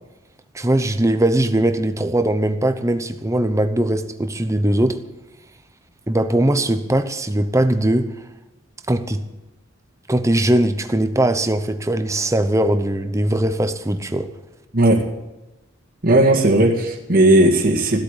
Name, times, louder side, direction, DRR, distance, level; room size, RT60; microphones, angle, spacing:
voice 1, 0.5-5.0 6.1-8.1 8.9-9.2 10.1-14.3, right 1 dB, 15° right, 0.8 m, -20 dB
voice 2, 14.7-15.1 16.0-18.0, right 1 dB, 45° right, 2.0 m, -15 dB
15.5 x 8.5 x 9.2 m
head